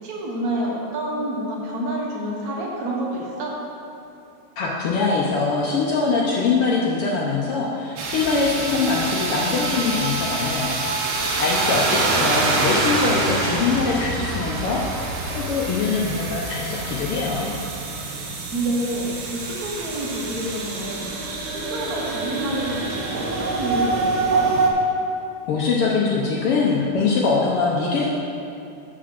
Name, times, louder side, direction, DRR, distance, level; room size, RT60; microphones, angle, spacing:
voice 1, 0.0-3.6 11.7-12.2 18.2-21.1 21.4-24.6, right 1 dB, 55° right, -3 dB, 1.0 m, -28 dB
voice 2, 4.6-10.8 11.4-17.5 25.5-28.1, left 4 dB, 80° left, -3 dB, 1.3 m, -23 dB
sound 1, 8.0-24.7, right 3 dB, 75° right, 1.1 m, -26 dB
7.8 x 5.0 x 5.8 m, 2.8 s
omnidirectional pair, 3.4 m